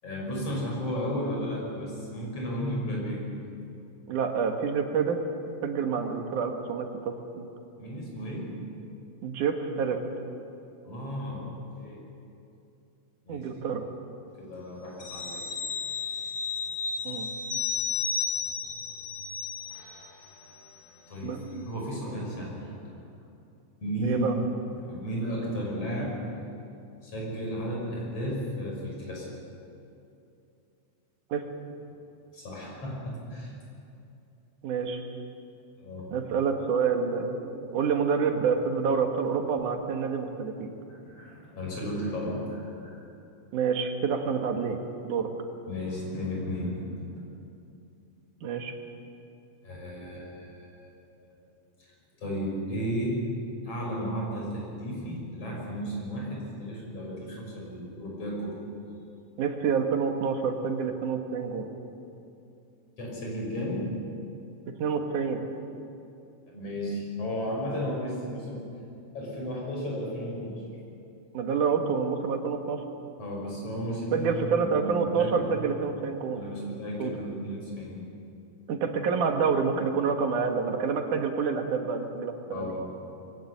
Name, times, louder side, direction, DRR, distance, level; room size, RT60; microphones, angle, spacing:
voice 1, 0.0-3.2 7.8-8.6 10.9-12.0 13.3-13.4 14.4-15.5 15.9-16.2 21.1-22.8 23.8-24.2 24.7-26.3 27.0-29.3 32.3-33.5 35.8-36.0 41.1-43.1 45.7-47.2 49.6-50.9 51.3-51.4 51.8-51.9 52.2-53.2 53.6-58.6 63.0-64.0 66.5-68.6 69.1-70.6 73.2-74.3 74.5-74.9 75.2-75.5 76.3-78.0 82.5-82.9, equal, 50° left, -2 dB, 7.0 m, -34 dB
voice 2, 4.1-5.2 5.6-7.5 9.2-10.0 13.3-13.8 17.0-17.3 21.2-21.4 24.0-24.3 31.3-31.5 34.6-35.0 36.1-40.7 43.5-45.3 48.4-48.8 59.4-61.7 64.7-65.4 71.3-72.8 74.1-76.4 77.0-77.1 78.7-82.7, right 6 dB, 85° right, 4 dB, 3.1 m, -28 dB
sound 1, 15.0-20.1 20.4-20.6, left 5 dB, 85° left, 4.9 m, -33 dB
22.0 x 16.5 x 9.4 m, 2.7 s
omnidirectional pair, 3.5 m